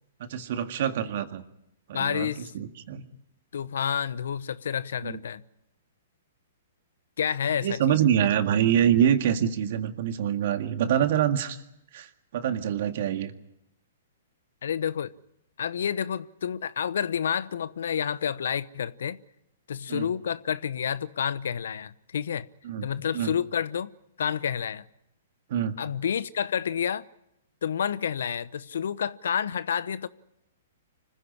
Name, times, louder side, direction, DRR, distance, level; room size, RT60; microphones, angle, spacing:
voice 1, 0.2-1.4 1.9-3.0 5.0-5.2 7.6-11.6 11.9-13.3 19.9-20.1 22.6-22.9 23.1-23.3 25.5-25.8, right 9 dB, 55° right, 1.9 m, -25 dB
voice 2, 1.9-2.5 3.5-5.4 7.2-8.0 14.6-15.1 15.6-19.2 19.7-22.5 22.8-23.9 24.2-24.8 25.8-27.1 27.6-30.1, left 8 dB, 70° left, 0.9 m, -29 dB
25.5 x 15.5 x 9.9 m
hypercardioid pair, 125°, 0 cm